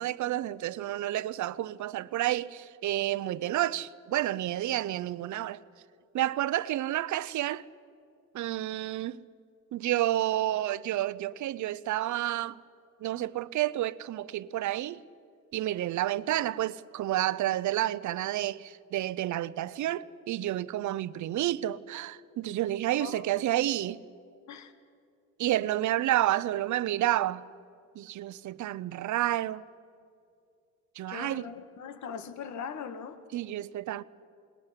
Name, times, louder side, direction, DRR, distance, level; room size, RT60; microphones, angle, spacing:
voice 1, 0.0-5.6 6.1-7.6 8.3-9.2 9.7-12.6 13.0-15.0 15.5-24.0 25.4-27.4 28.0-29.6 31.0-31.5 33.3-34.0, right 14 dB, 70° right, 0.7 m, -30 dB
voice 2, 22.9-23.3 24.5-24.7 31.1-33.2, left 7 dB, 70° left, 1.8 m, -40 dB
22.0 x 19.5 x 9.9 m
cardioid pair, 90°, 30 cm